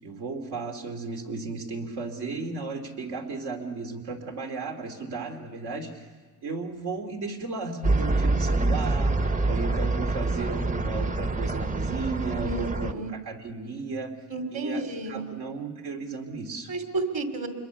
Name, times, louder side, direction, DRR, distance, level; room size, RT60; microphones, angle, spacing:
voice 1, 0.0-6.1 6.4-9.2 9.4-14.1 14.5-16.7, right 3 dB, 85° right, 3 dB, 2.8 m, -34 dB
sound 1, 7.8-12.9, right 2 dB, 20° right, 0.7 m, -26 dB
voice 2, 12.5-13.1 14.3-15.3 16.7-17.5, right 2 dB, 50° right, 7 dB, 3.2 m, -31 dB
27.5 x 22.5 x 7.1 m, 1.5 s
cardioid pair, 105°, 37 cm